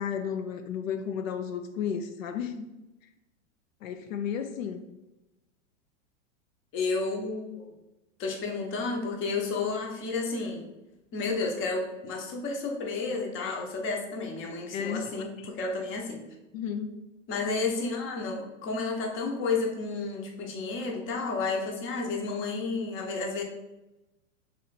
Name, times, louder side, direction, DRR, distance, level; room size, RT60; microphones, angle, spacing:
voice 1, 0.0-2.7 3.8-4.9 14.7-15.1 16.5-17.0, left 7 dB, 90° left, 7 dB, 0.5 m, -33 dB
voice 2, 6.7-7.6 8.2-10.7 11.1-16.2 17.3-23.4, left 4 dB, 30° left, 1 dB, 0.8 m, -31 dB
3.3 x 2.8 x 4.0 m, 1.0 s
hypercardioid pair, 120°, 39 cm